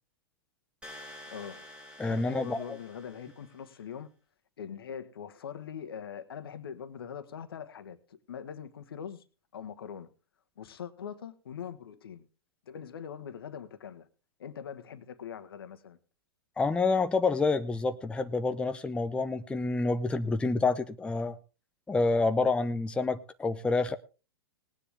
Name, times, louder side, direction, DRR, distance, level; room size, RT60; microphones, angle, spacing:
sound 1, 0.8-3.7, left 1 dB, 10° right, 4.0 m, -49 dB
voice 1, 1.3-1.7 2.1-4.1 4.6-9.2 9.5-10.1 10.6-12.3 12.7-14.1 14.4-16.0, left 8 dB, 65° left, 1.5 m, -42 dB
voice 2, 2.0-2.8 16.6-21.4 21.9-24.0, left 3 dB, 10° left, 0.7 m, -28 dB
19.0 x 9.9 x 3.5 m
figure-of-eight pair, 110°, 13 cm